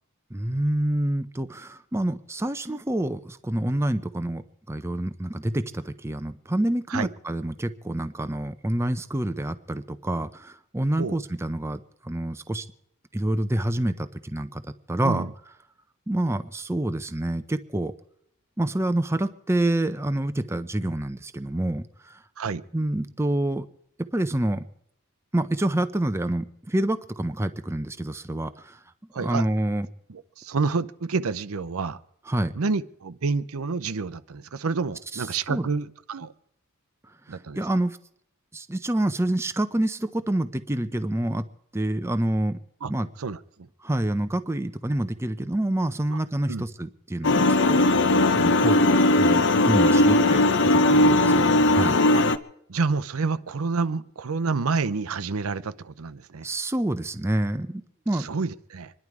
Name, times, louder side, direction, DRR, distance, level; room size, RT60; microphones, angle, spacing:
voice 1, 0.3-4.4 4.7-12.6 13.1-14.6 14.9-15.3 16.1-17.9 18.6-22.2 22.7-23.7 24.1-24.6 25.3-28.8 29.2-29.9 32.3-32.5 35.1-35.7 37.3-38.0 38.5-41.4 41.7-42.6 42.9-43.1 43.8-47.8 48.3-52.0 56.4-58.3, right 1 dB, 10° right, 0.5 m, -27 dB
voice 2, 15.0-15.3 22.4-22.6 29.1-29.4 30.1-32.0 32.6-36.3 37.3-37.6 42.8-42.9 43.2-43.4 46.1-46.2 46.5-46.6 52.1-52.2 52.7-56.5 58.1-58.9, right 4 dB, 80° right, 0.7 m, -28 dB
sound 1, 47.2-52.4, left 2 dB, 55° left, 0.7 m, -19 dB
25.5 x 11.0 x 4.7 m
head